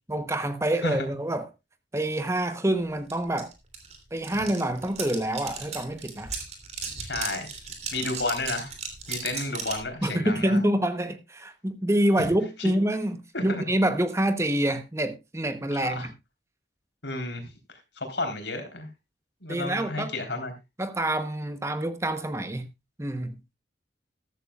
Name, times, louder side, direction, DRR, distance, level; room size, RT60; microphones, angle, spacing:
voice 1, 0.1-1.5 1.9-3.5 4.1-6.3 10.0-16.1 19.5-20.1 20.8-22.6 23.0-23.4, right 1 dB, 15° right, 0.9 m, -27 dB
sound 1, 3.1-3.2 3.4-9.9, right 5 dB, 40° right, 2.9 m, -36 dB
voice 2, 7.0-7.5 7.9-8.7 9.1-10.6 12.6-12.7 13.3-13.6 15.7-16.1 17.0-17.5 18.0-18.9 19.4-20.5, left 2 dB, 80° left, 3.7 m, -31 dB
14.0 x 13.0 x 2.3 m
head